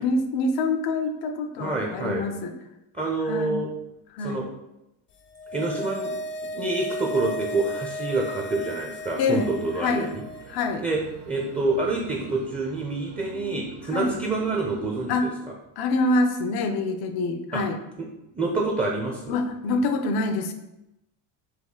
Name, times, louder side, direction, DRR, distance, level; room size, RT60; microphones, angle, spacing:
voice 1, 0.0-2.5 3.3-3.6 4.1-4.4 9.2-9.5 9.8-10.1 10.5-10.8 13.9-14.2 15.1-15.3 15.8-17.8 19.3-20.5, left 3 dB, 65° left, 6 dB, 0.7 m, -25 dB
voice 2, 1.6-2.2 2.9-3.7 4.2-4.5 5.5-6.1 6.4-10.6 10.8-11.0 11.3-15.3 17.5-17.6 18.0-18.1 18.3-19.4, right 3 dB, 15° right, -1 dB, 0.7 m, -27 dB
sound 1, 5.2-10.7 10.9-11.0, equal, 30° left, 0.4 m, -35 dB
sound 2, 9.5-15.1, right 7 dB, 80° right, 0.7 m, -44 dB
4.4 x 2.7 x 3.8 m, 0.90 s
supercardioid pair, 95°, 41 cm